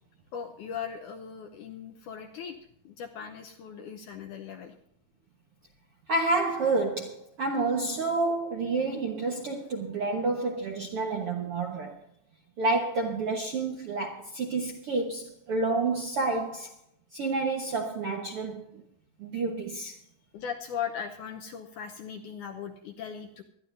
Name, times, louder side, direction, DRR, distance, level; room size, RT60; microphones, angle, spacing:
voice 1, 0.3-2.6 2.8-4.8 20.3-23.4, left 7 dB, 75° left, 1.9 m, -38 dB
voice 2, 6.1-12.0 12.6-16.7 17.1-18.8 19.2-20.0, right 3 dB, 60° right, 1.5 m, -29 dB
23.5 x 11.5 x 2.6 m
omnidirectional pair, 4.4 m